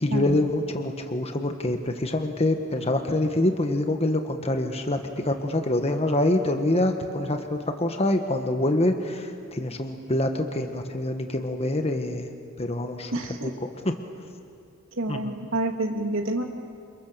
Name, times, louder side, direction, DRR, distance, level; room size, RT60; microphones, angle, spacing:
voice 1, 0.0-12.3 12.6-13.1 13.4-13.5 15.1-15.3, left 1 dB, 30° left, 5 dB, 1.5 m, -25 dB
voice 2, 13.1-13.6 14.9-16.4, right 2 dB, 70° right, 3 dB, 2.7 m, -28 dB
28.5 x 28.0 x 6.9 m, 2.6 s
head